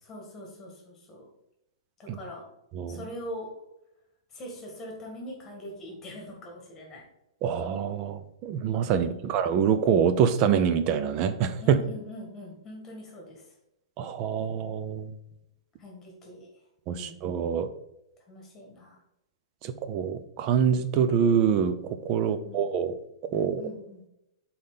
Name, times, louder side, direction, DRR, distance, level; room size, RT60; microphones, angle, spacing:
voice 1, 0.0-1.3 2.0-2.5 2.9-3.5 4.3-7.0 8.9-9.3 11.6-13.4 15.8-16.5 16.9-17.2 18.3-19.0 22.2-22.7 23.6-24.0, equal, 15° left, -1 dB, 1.8 m, -42 dB
voice 2, 7.4-11.8 14.0-15.1 16.9-17.7 19.6-23.0 23.2-23.6, right 7 dB, 25° right, 11 dB, 0.5 m, -25 dB
5.7 x 4.2 x 5.1 m, 0.86 s
hypercardioid pair, 165°, 3 cm